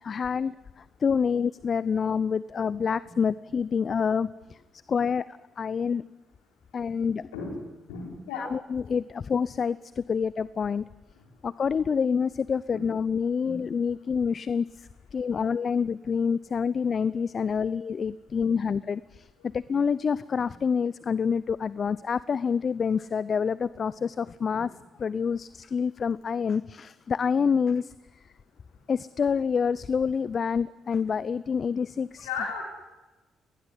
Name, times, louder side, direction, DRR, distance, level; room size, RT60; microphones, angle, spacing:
voice 1, 0.0-4.6 4.9-5.3 5.6-6.0 6.7-7.3 8.4-10.8 11.4-19.3 19.5-24.7 25.0-28.2 28.9-32.3, left 6 dB, 50° left, 18 dB, 0.8 m, -27 dB
voice 2, 7.9-8.5 12.7-12.8 13.4-13.6 32.2-32.7, left 5 dB, 85° left, 1 dB, 4.5 m, -34 dB
24.0 x 19.5 x 9.9 m, 1.1 s
hypercardioid pair, 45°, 0 cm